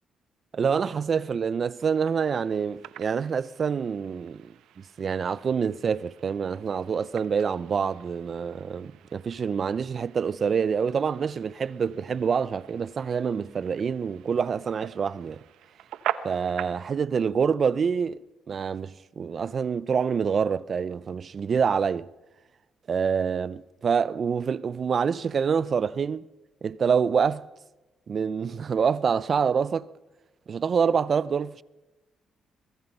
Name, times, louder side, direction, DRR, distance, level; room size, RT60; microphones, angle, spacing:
voice 1, 0.5-4.5 5.0-15.4 16.2-18.2 18.5-22.1 22.9-26.2 26.6-27.5 28.1-29.9 30.5-31.6, right 6 dB, 45° right, 0.6 m, -26 dB
sound 1, 1.8-16.9, right 11 dB, 85° right, 0.9 m, -42 dB
23.0 x 22.5 x 5.5 m
cardioid pair, 90°, 0 cm